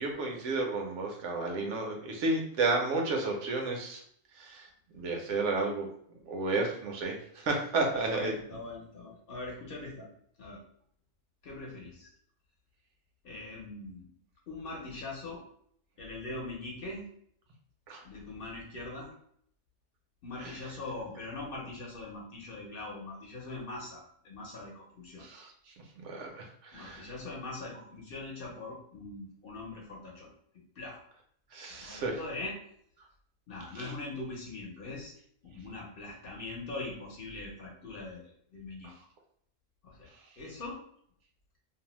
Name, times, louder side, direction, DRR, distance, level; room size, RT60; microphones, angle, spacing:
voice 1, 0.0-4.0 4.4-4.7 4.9-5.9 6.3-8.4 17.9-18.0 20.4-20.6 25.2-25.5 26.0-27.1 31.5-32.2 33.7-33.9 38.8-38.9, right 3 dB, 75° right, 1 dB, 0.9 m, -32 dB
voice 2, 7.9-10.1 10.4-10.6 11.4-12.1 13.2-14.1 14.5-15.4 16.0-17.0 18.0-19.1 20.2-25.2 26.7-30.3 30.8-31.0 31.7-32.6 33.5-35.1 35.4-38.9 39.8-40.8, left 2 dB, 55° left, -2 dB, 0.8 m, -42 dB
2.6 x 2.0 x 2.9 m, 0.65 s
omnidirectional pair, 1.3 m